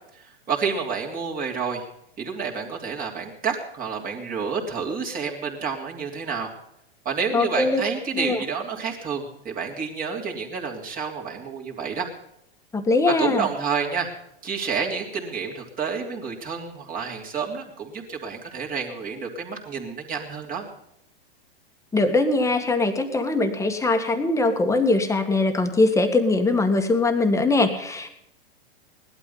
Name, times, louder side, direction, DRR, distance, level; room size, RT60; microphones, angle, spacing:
voice 1, 0.1-1.8 2.2-6.5 7.0-12.1 13.1-14.1 14.4-20.7, right 6 dB, 25° right, 0 dB, 3.1 m, -29 dB
voice 2, 7.3-7.8 8.1-8.4 12.7-13.5 21.9-28.1, left 2 dB, 10° left, 6 dB, 1.8 m, -21 dB
18.0 x 12.0 x 5.5 m, 0.78 s
hypercardioid pair, 115°, 32 cm